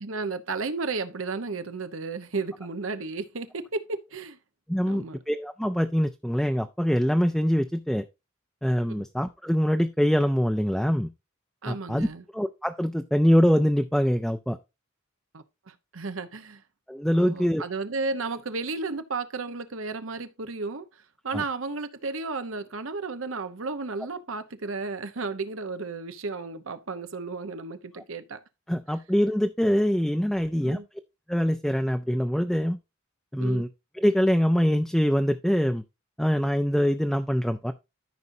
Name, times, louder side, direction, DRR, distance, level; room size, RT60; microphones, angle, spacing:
voice 1, 0.0-4.4 4.9-5.2 8.9-9.0 11.6-12.2 15.3-16.6 17.1-20.9 21.2-28.4 30.6-30.9 33.4-33.7, right 3 dB, 80° right, 0.9 m, -33 dB
voice 2, 4.7-8.0 8.6-11.1 11.7-12.1 12.3-14.6 16.9-17.6 21.3-21.4 28.7-30.8 31.3-32.8 33.3-33.7 34.0-35.8 36.2-37.7, equal, ahead, 0.4 m, -24 dB
13.5 x 5.3 x 2.7 m
head